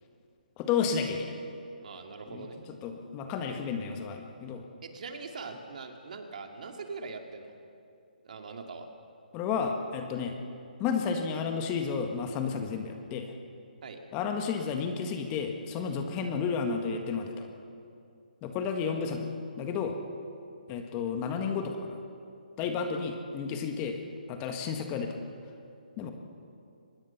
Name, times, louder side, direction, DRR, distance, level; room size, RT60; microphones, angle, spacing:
voice 1, 0.6-1.3 2.3-2.5 2.8-4.6 9.3-10.3 10.8-13.3 14.1-17.5 18.4-19.3 19.6-20.0 20.7-22.0 22.6-24.0 24.3-25.2 26.0-26.1, left 6 dB, 20° left, 4 dB, 1.6 m, -32 dB
voice 2, 1.8-2.6 4.8-7.5 8.2-8.9 13.8-14.0 22.6-22.7, right 4 dB, 55° right, 3 dB, 2.5 m, -42 dB
24.5 x 20.0 x 5.9 m, 2.5 s
hypercardioid pair, 155°, 5 cm